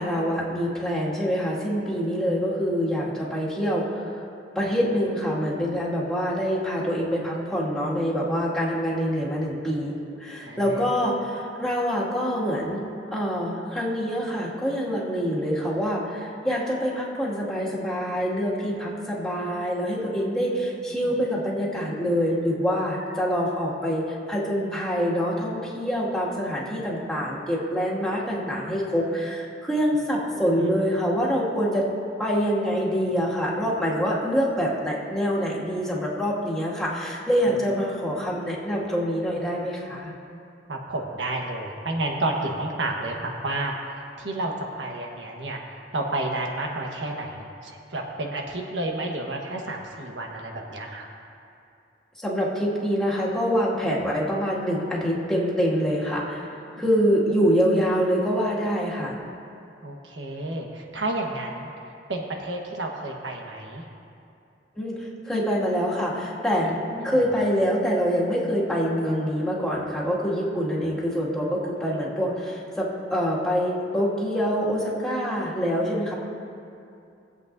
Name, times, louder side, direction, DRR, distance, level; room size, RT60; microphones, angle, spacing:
voice 1, 0.0-4.2 4.6-9.9 10.2-12.8 13.1-31.8 32.2-40.1 52.2-56.5 56.8-59.2 64.8-66.7 67.0-76.1, equal, 5° left, -8 dB, 2.1 m, -25 dB
voice 2, 10.4-10.9 20.9-21.1 23.2-23.3 30.3-30.7 40.7-44.5 44.8-51.1 56.6-56.8 59.8-61.7 62.1-63.8 66.6-67.2 71.6-72.1, right 2 dB, 90° right, 0 dB, 1.3 m, -31 dB
20.5 x 8.2 x 2.6 m, 2.6 s
head